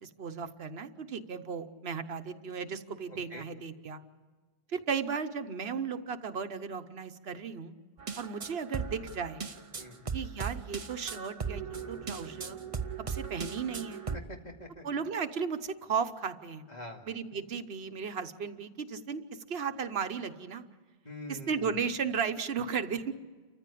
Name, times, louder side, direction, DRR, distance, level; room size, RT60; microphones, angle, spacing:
voice 1, 0.0-4.0 4.7-7.7 8.2-9.4 10.1-12.6 13.1-14.0 14.8-16.6 17.1-20.6 21.3-23.1, right 6 dB, 75° right, 9 dB, 1.2 m, -35 dB
voice 2, 3.1-3.4 9.8-10.0 14.1-14.8 16.7-17.0 21.0-21.9, left 1 dB, 40° left, 1 dB, 2.5 m, -44 dB
sound 1, 8.0-14.2, right 6 dB, 35° right, 0.8 m, -38 dB
29.0 x 15.0 x 8.5 m, 1.4 s
omnidirectional pair, 1.0 m